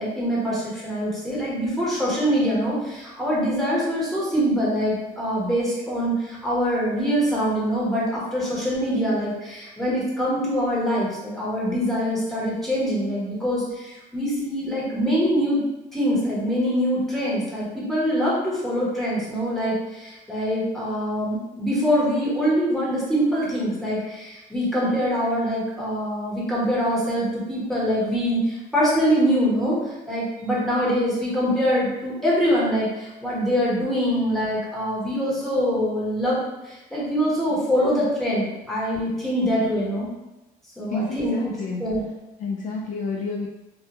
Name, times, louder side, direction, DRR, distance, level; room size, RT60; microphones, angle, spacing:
voice 1, 0.0-15.6 15.9-29.8 30.1-36.4 36.6-40.1 40.8-41.3 41.8-42.0, equal, ahead, -7 dB, 1.0 m, -24 dB
voice 2, 40.9-41.8 42.4-43.5, left 4 dB, 50° left, -2 dB, 0.4 m, -29 dB
2.2 x 2.1 x 2.8 m, 1.0 s
cardioid pair, 110°, 17 cm